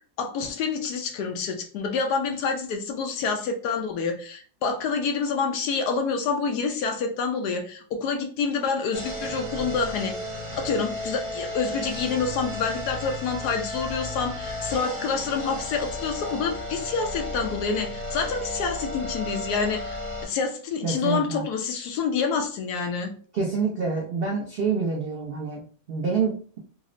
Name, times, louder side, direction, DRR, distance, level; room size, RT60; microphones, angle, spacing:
voice 1, 0.2-10.2 10.6-23.1, left 5 dB, 75° left, 4 dB, 1.1 m, -27 dB
sound 1, 8.9-20.2, left 1 dB, 30° right, 0.8 m, -34 dB
voice 2, 20.8-21.4 23.3-26.6, right 5 dB, 75° right, -2 dB, 0.5 m, -27 dB
3.9 x 2.0 x 2.5 m, 0.42 s
omnidirectional pair, 1.8 m